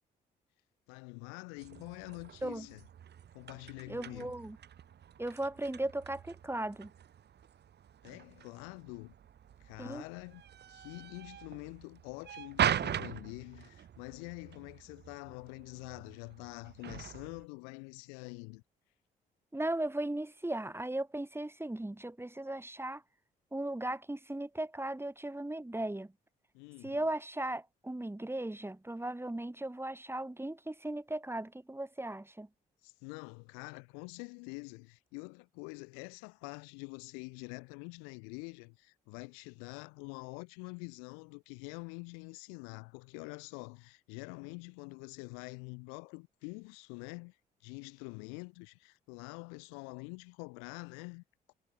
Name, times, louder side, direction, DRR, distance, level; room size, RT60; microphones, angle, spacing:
voice 1, 0.9-2.8 3.3-4.3 8.0-9.1 9.6-10.4 10.7-18.6 26.5-27.0 32.8-47.4 47.6-51.5, left 40 dB or more, 75° left, 2.7 m, -46 dB
sound 1, 1.6-17.5, right 9 dB, 55° right, 6.7 m, -41 dB
voice 2, 3.9-4.6 5.2-6.9 9.8-10.0 19.5-23.0 23.5-26.1 26.8-32.5, right 1 dB, 10° right, 6.9 m, -37 dB
hypercardioid pair, 45°, 20 cm